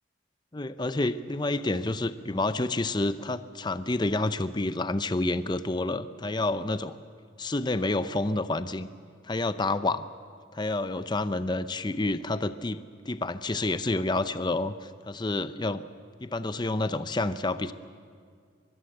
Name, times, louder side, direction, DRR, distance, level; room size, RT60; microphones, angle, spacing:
voice 1, 0.5-6.9 7.4-8.9 9.2-10.0 10.5-12.8 13.1-15.8 16.2-17.7, left 2 dB, 20° left, 13 dB, 0.6 m, -29 dB
23.0 x 22.5 x 7.9 m, 2.1 s
head